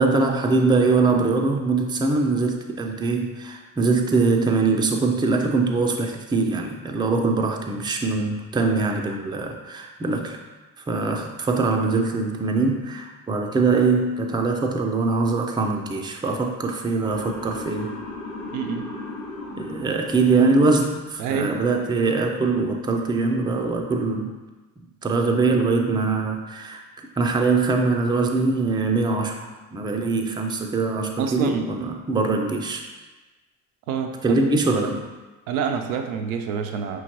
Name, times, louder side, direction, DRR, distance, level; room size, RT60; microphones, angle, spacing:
voice 1, 0.0-10.4 10.9-17.9 19.6-24.4 25.0-26.8 27.2-32.8 34.2-35.1, right 3 dB, 10° right, 2 dB, 0.5 m, -22 dB
Motor vehicle (road) / Siren, 17.0-21.2, left 2 dB, 85° left, 0.9 m, -36 dB
voice 2, 18.5-18.9 21.2-21.6 31.2-31.6 33.9-34.4 35.5-37.0, right 6 dB, 75° right, 5 dB, 0.5 m, -27 dB
5.5 x 3.0 x 2.9 m, 1.2 s
figure-of-eight pair, 45°, 43 cm